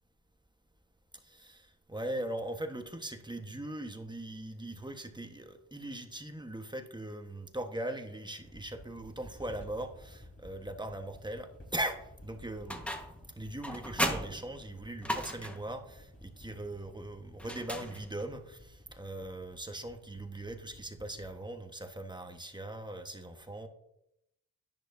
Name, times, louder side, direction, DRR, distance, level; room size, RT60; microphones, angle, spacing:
voice 1, 1.2-12.8 13.4-23.7, right 1 dB, 15° right, 6 dB, 1.3 m, -40 dB
sound 1, 8.4-21.4, left 1 dB, 40° left, 3.9 m, -54 dB
sound 2, 12.7-13.2 13.6-15.7 17.4-18.3, equal, 5° left, 1.4 m, -36 dB
10.5 x 10.5 x 2.7 m, 0.83 s
supercardioid pair, 45°, 34 cm